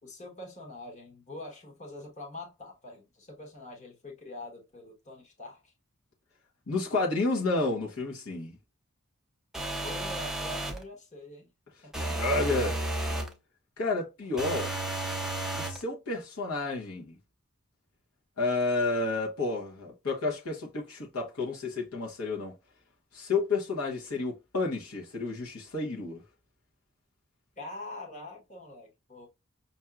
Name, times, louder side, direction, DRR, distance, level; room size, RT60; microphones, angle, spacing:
voice 1, 0.0-5.7 9.8-11.5 11.8-12.2 14.2-14.3 27.6-29.3, left 2 dB, 35° left, 1.2 m, -44 dB
voice 2, 6.7-8.6 12.0-12.8 13.8-14.7 15.5-17.2 18.4-22.5 23.1-26.2, left 3 dB, 70° left, 1.1 m, -30 dB
sound 1, 9.5-10.8 11.9-13.3 14.4-15.8, right 1 dB, ahead, 0.6 m, -32 dB
5.6 x 2.6 x 2.3 m
head